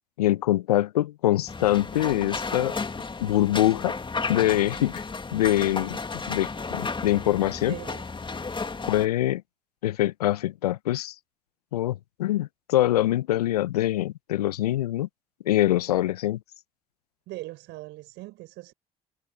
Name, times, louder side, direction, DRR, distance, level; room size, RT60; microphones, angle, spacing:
voice 1, 0.2-2.8 3.2-3.9 4.3-5.0 5.3-6.0 6.3-7.8 8.9-9.4 9.8-11.1 11.7-15.1 15.4-16.4, left 14 dB, 85° left, 0.8 m, -24 dB
sound 1, 1.5-9.1, left 4 dB, 25° left, 2.3 m, -33 dB
voice 2, 7.7-8.0 17.3-18.7, right 19 dB, 70° right, 4.9 m, -40 dB
hypercardioid pair, 50°, 20 cm